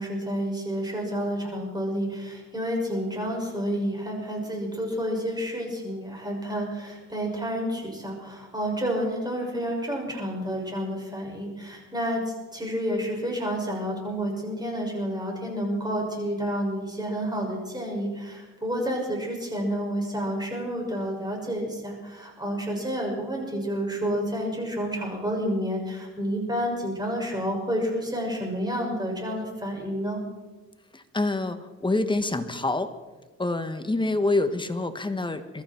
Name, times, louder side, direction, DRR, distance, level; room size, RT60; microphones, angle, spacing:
voice 1, 0.0-12.2 12.5-30.2, equal, 15° right, 0 dB, 6.4 m, -30 dB
voice 2, 30.9-32.9 33.4-35.6, left 2 dB, 15° left, 9 dB, 1.3 m, -26 dB
22.5 x 14.0 x 4.5 m, 1.3 s
cardioid pair, 90°, 30 cm